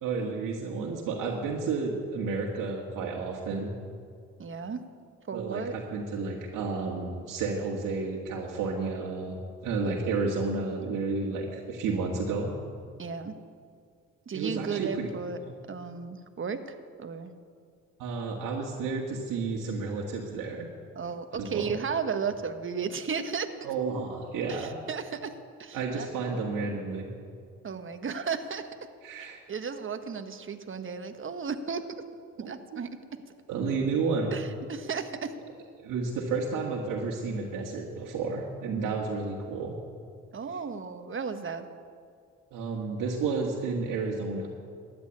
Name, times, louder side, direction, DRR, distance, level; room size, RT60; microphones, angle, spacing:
voice 1, 0.0-3.7 5.3-12.5 14.3-15.1 15.5-15.6 18.0-20.7 21.4-21.7 23.6-24.7 25.7-27.1 29.0-29.4 32.4-32.8 33.5-34.3 35.8-39.8 42.5-44.5, right 4 dB, 75° right, -1 dB, 1.8 m, -31 dB
voice 2, 4.4-4.8 5.3-5.7 9.8-10.0 13.0-13.4 14.3-15.4 15.7-17.3 20.9-23.5 24.5-26.1 27.6-28.7 29.2-32.0 32.4-33.2 34.3-35.3 40.3-41.7, right 6 dB, 40° right, 8 dB, 1.3 m, -34 dB
13.0 x 8.8 x 9.9 m, 2.2 s
supercardioid pair, 65°, 32 cm